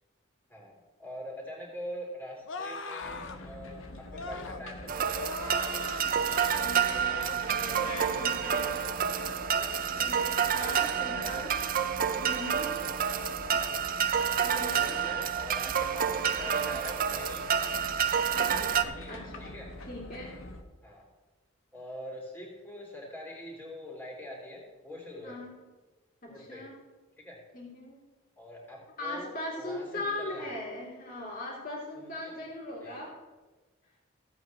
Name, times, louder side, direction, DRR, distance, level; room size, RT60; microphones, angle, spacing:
voice 1, 1.0-5.8 7.4-8.6 10.6-11.6 14.4-17.6 18.8-19.7 20.8-21.1 21.7-25.4 26.3-26.6 27.2-27.4 28.4-30.6 31.9-32.6 32.8-33.0, equal, 10° left, -3 dB, 2.8 m, -44 dB
sound 1, 2.5-3.4 4.1-4.6 5.1-6.7 7.1-7.4 7.8-8.2 8.6-8.9, left 3 dB, 70° left, 0.7 m, -41 dB
sound 2, 3.0-20.6, left 2 dB, 90° left, 1.1 m, -45 dB
sound 3, 4.9-18.8, right 8 dB, 45° right, 0.5 m, -29 dB
voice 2, 6.6-8.8 9.6-11.5 12.2-12.7 14.4-15.1 18.3-18.7 19.1-19.2 19.9-20.3 25.2-25.6 26.2-26.8 27.5-28.0 29.0-33.1, left 1 dB, 45° left, -4 dB, 2.9 m, -40 dB
16.0 x 8.2 x 3.1 m, 1.2 s
head